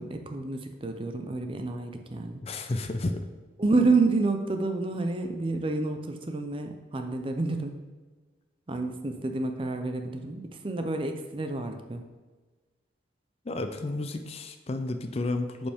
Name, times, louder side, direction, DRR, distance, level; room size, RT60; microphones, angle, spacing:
voice 1, 0.0-2.4 3.6-7.8 8.7-12.0, right 3 dB, 25° right, 5 dB, 0.5 m, -29 dB
voice 2, 2.4-3.2 13.5-15.7, left 2 dB, 30° left, 7 dB, 0.4 m, -31 dB
8.9 x 5.3 x 3.5 m, 1.3 s
head